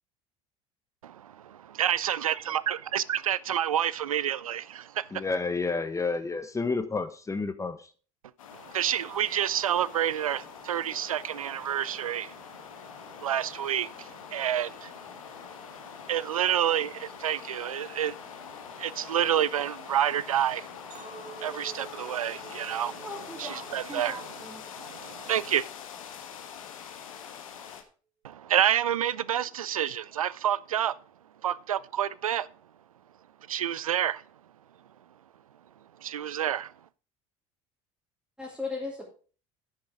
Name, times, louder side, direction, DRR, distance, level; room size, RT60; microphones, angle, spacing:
voice 1, 1.0-5.2 8.5-12.4 13.0-15.0 16.0-18.3 18.8-20.7 21.4-23.0 23.4-24.2 24.8-25.7 28.2-31.0 31.4-32.5 33.5-34.2 36.0-36.7, right 10 dB, 85° right, 0.4 m, -29 dB
voice 2, 5.1-7.9, left 4 dB, 20° left, 0.9 m, -30 dB
sound 1, 8.4-27.8, left 8 dB, 80° left, 1.2 m, -44 dB
Chink clink, 20.9-25.3 25.7-26.1, right 6 dB, 45° right, 2.5 m, -50 dB
voice 3, 23.0-23.6 23.9-24.6 38.4-39.0, left 3 dB, 5° right, 2.8 m, -38 dB
9.8 x 6.6 x 4.8 m
hypercardioid pair, 65°, 17 cm